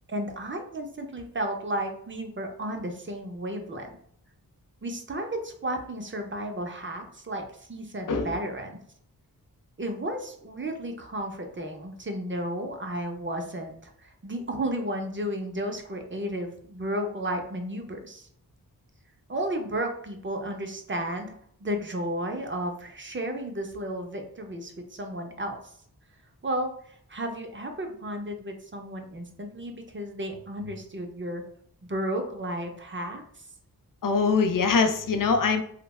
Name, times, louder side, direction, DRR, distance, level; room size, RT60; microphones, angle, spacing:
voice 1, 0.1-3.9 4.8-8.8 9.8-18.3 19.3-21.3 21.6-25.5 26.4-31.4 31.9-33.4, right 1 dB, 30° right, 4 dB, 0.5 m, -33 dB
voice 2, 34.0-35.6, left 4 dB, 60° left, 6 dB, 0.5 m, -23 dB
3.2 x 2.1 x 2.3 m, 0.64 s
cardioid pair, 50°, 37 cm